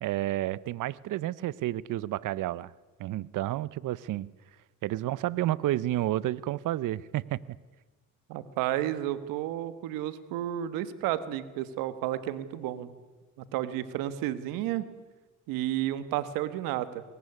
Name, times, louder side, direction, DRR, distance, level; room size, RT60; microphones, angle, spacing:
voice 1, 0.0-2.7 3.0-4.3 4.8-7.4, right 14 dB, 70° right, 21 dB, 0.8 m, -30 dB
voice 2, 8.3-12.9 13.5-14.9 15.5-17.0, right 13 dB, 90° right, 13 dB, 1.5 m, -32 dB
22.5 x 18.0 x 9.8 m, 1.3 s
supercardioid pair, 65°, 32 cm